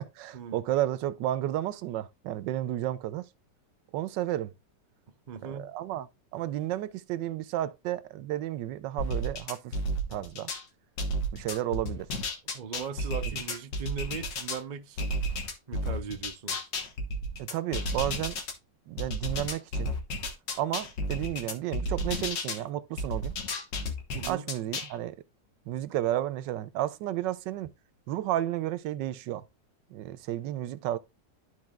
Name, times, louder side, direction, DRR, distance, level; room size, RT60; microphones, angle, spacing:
voice 1, 0.0-3.3 3.9-4.5 5.4-6.1 6.3-9.7 10.1-10.5 11.3-12.1 17.4-18.4 18.9-19.9 20.6-23.4 24.2-25.2 25.7-27.7 28.1-29.4 29.9-31.0, right 13 dB, 85° right, 1.3 m, -32 dB
voice 2, 5.3-5.7 12.5-15.1 15.7-16.7 24.1-24.5, right 6 dB, 60° right, 0.4 m, -39 dB
sound 1, 9.0-10.6 11.0-14.6 15.0-18.5 19.0-22.6 23.0-24.9, equal, 85° left, 2.0 m, -32 dB
12.5 x 4.6 x 2.4 m
omnidirectional pair, 1.9 m